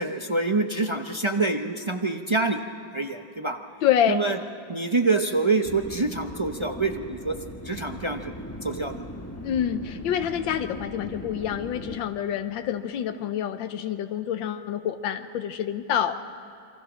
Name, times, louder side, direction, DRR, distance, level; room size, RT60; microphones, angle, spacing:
voice 1, 0.0-2.6 2.9-3.6 4.1-4.4 4.7-7.4 7.6-8.3 8.6-9.1, right 3 dB, 40° right, 4 dB, 0.4 m, -26 dB
voice 2, 3.8-4.1 9.4-16.1, left 9 dB, 90° left, 8 dB, 1.6 m, -27 dB
sound 1, 5.6-12.0, left 1 dB, 10° left, 1.0 m, -39 dB
27.5 x 24.5 x 6.2 m, 2.7 s
omnidirectional pair, 2.0 m